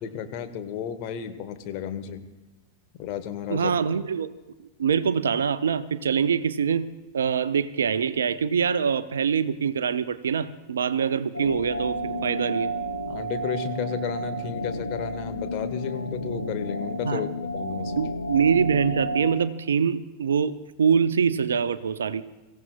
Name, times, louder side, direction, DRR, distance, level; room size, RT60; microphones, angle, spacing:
voice 1, 0.0-2.2 3.0-3.7 13.1-18.0, left 8 dB, 45° left, 7 dB, 1.4 m, -33 dB
voice 2, 3.5-4.3 4.8-12.7 17.0-17.2 18.0-22.2, right 7 dB, 70° right, 14 dB, 0.6 m, -24 dB
sound 1, 11.3-19.2, equal, 85° left, 1.1 m, -31 dB
24.0 x 15.5 x 2.4 m, 1.1 s
figure-of-eight pair, 90°, 0 cm